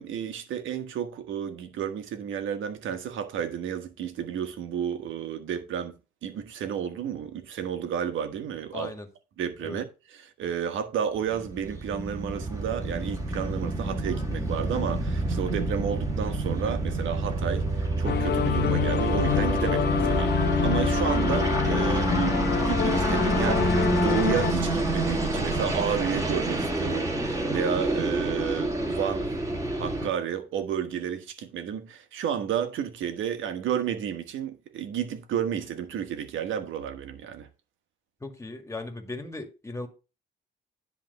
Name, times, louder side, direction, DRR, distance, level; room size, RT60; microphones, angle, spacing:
voice 1, 0.0-5.9 6.2-8.9 9.4-29.3 29.8-37.5, right 8 dB, 75° right, 1.4 m, -31 dB
voice 2, 8.7-9.1 9.6-9.8 38.2-39.9, left 2 dB, 15° left, 1.9 m, -37 dB
sound 1, 11.3-30.1, right 1 dB, 15° right, 2.5 m, -27 dB
sound 2, 18.0-24.5, left 10 dB, 60° left, 0.8 m, -27 dB
10.5 x 3.5 x 6.7 m
cardioid pair, 90°, 20 cm